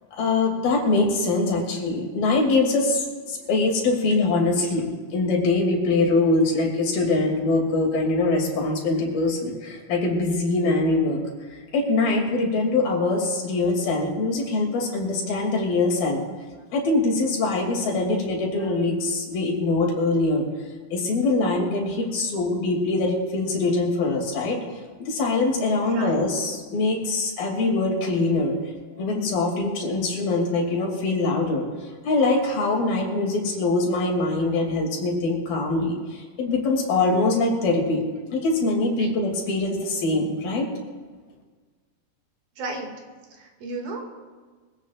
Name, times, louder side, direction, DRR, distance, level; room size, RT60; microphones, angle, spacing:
voice 1, 0.1-11.2 11.5-16.2 16.7-20.4 20.9-24.6 25.0-28.5 29.0-31.7 32.0-38.0 38.3-40.7, left 2 dB, 80° left, 0 dB, 4.5 m, -23 dB
voice 2, 25.8-26.3 28.9-29.0 34.4-34.5 39.0-39.1 42.6-42.9 43.3-44.1, right 2 dB, 80° right, 1 dB, 4.0 m, -34 dB
24.0 x 16.5 x 2.5 m, 1.4 s
omnidirectional pair, 4.1 m